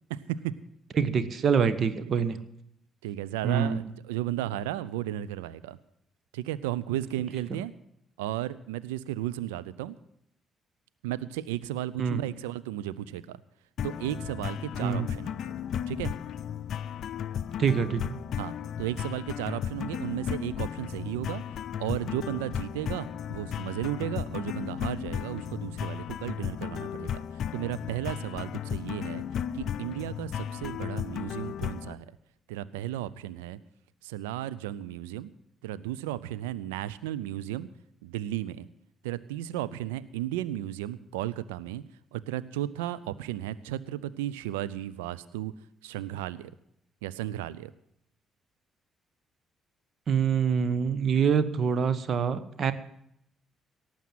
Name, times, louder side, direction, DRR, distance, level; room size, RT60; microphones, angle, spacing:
voice 1, 0.1-0.5 3.0-5.8 6.3-7.7 8.2-10.0 11.0-13.4 13.8-15.5 15.9-16.1 18.3-18.5 18.8-21.4 21.8-27.2 27.5-29.2 29.5-32.1 32.5-33.6 34.0-35.3 35.6-37.7 38.0-38.7 39.0-41.8 42.1-45.5 45.8-46.5 47.0-47.7, right 13 dB, 85° right, 17 dB, 0.4 m, -34 dB
voice 2, 1.0-2.4 3.4-3.8 7.5-7.6 12.0-12.2 14.8-15.1 17.6-18.2 50.1-52.7, right 6 dB, 55° right, 13 dB, 1.1 m, -25 dB
sound 1, 13.8-31.9, left 9 dB, 60° left, 0.4 m, -35 dB
17.5 x 7.3 x 7.3 m, 0.74 s
hypercardioid pair, 45°, 0 cm